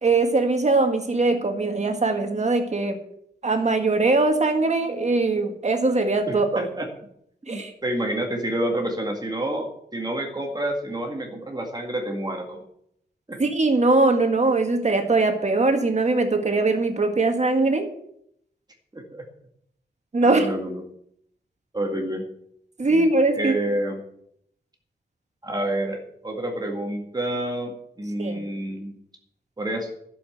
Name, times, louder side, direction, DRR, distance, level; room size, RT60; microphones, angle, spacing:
voice 1, 0.0-3.0 3.4-6.6 7.5-7.7 13.4-17.9 20.1-20.5 22.8-23.5 28.2-28.4, right 3 dB, 40° right, 6 dB, 1.8 m, -21 dB
voice 2, 6.3-6.9 7.5-12.6 13.3-13.4 18.9-19.2 20.2-20.8 21.7-22.2 22.8-24.0 25.4-29.0 29.6-29.9, right 1 dB, 20° right, 2 dB, 2.0 m, -29 dB
12.5 x 7.2 x 7.9 m, 0.72 s
wide cardioid pair, 135°, 18 cm